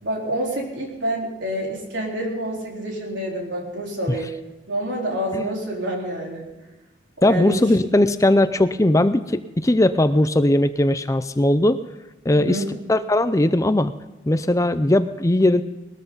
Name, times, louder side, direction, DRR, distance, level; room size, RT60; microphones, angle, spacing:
voice 1, 0.0-4.3 4.7-6.5 7.2-7.6 12.3-12.7, right 1 dB, 80° right, -1 dB, 4.3 m, -28 dB
voice 2, 7.2-11.8 12.2-12.6 12.9-13.9 14.3-15.6, left 1 dB, 15° left, 12 dB, 0.5 m, -19 dB
20.5 x 13.5 x 4.0 m, 1.1 s
head